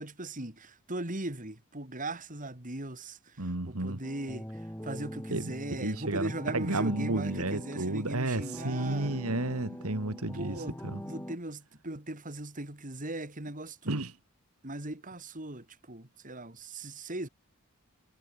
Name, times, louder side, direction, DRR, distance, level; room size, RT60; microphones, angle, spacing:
voice 1, 0.0-9.2 10.3-14.0 14.6-17.3, right 2 dB, 35° right, 3.5 m, -39 dB
voice 2, 3.4-4.0 5.3-11.0 13.9-14.1, right 2 dB, 75° right, 2.3 m, -32 dB
sound 1, 4.0-11.4, equal, 10° left, 3.9 m, -43 dB
head